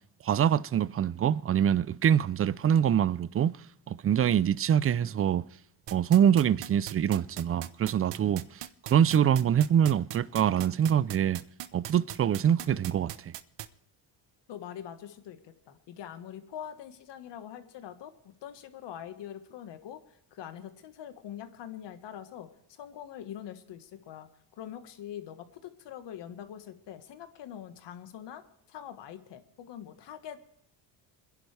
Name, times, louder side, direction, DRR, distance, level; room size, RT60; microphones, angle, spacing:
voice 1, 0.2-3.5 3.9-5.4 5.9-8.4 8.9-11.4 11.7-13.1, right 9 dB, 30° right, 0.5 m, -24 dB
sound 1, 5.9-13.7, right 13 dB, 60° right, 1.0 m, -39 dB
voice 2, 14.5-18.1 18.4-20.0 20.3-24.3 24.5-28.4 28.7-30.4, left 10 dB, 60° left, 1.6 m, -43 dB
27.0 x 11.0 x 3.4 m
supercardioid pair, 85°, 47 cm